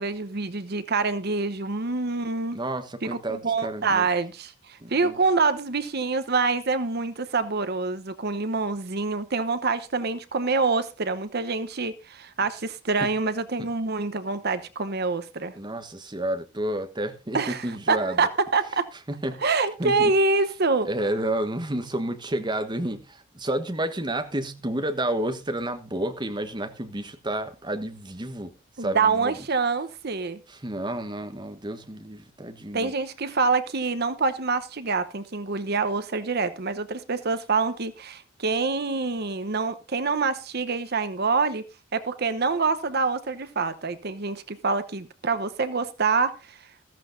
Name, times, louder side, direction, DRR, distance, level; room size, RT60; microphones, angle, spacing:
voice 1, 0.0-2.6 3.0-15.5 17.3-18.9 19.4-20.9 28.8-30.4 32.7-41.6 41.9-46.6, right 4 dB, 50° right, 0.9 m, -26 dB
voice 2, 2.5-4.0 4.8-5.1 13.0-13.1 13.6-13.7 15.5-18.2 19.1-19.4 19.8-20.1 20.8-28.5 28.8-29.3 30.5-32.9, right 1 dB, 20° right, 1.2 m, -30 dB
14.5 x 14.0 x 2.7 m
head